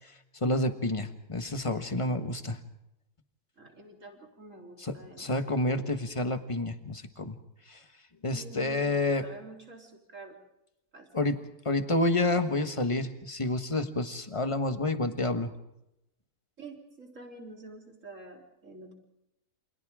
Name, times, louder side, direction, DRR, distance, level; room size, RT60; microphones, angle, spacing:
voice 1, 0.4-2.6 4.8-7.4 7.7-7.8 8.2-9.2 11.1-11.4 11.6-15.5, left 2 dB, 20° left, 8 dB, 1.3 m, -29 dB
voice 2, 3.6-5.9 8.3-10.4 10.9-11.1 16.6-18.9, right 2 dB, 50° right, 1 dB, 4.1 m, -48 dB
29.0 x 27.0 x 3.7 m, 0.85 s
omnidirectional pair, 1.6 m